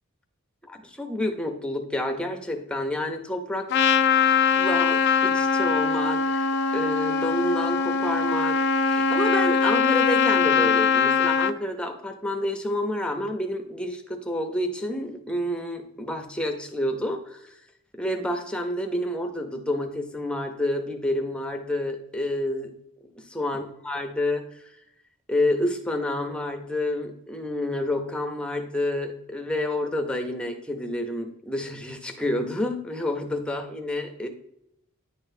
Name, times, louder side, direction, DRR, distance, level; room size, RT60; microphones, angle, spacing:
voice 1, 0.7-3.7 4.5-6.5 6.7-17.4 18.0-22.7 23.2-24.4 25.3-34.3, left 1 dB, 5° left, 4 dB, 0.6 m, -29 dB
Trumpet, 3.7-11.5, left 5 dB, 50° left, 0.3 m, -22 dB
9.7 x 3.9 x 2.7 m, 0.79 s
head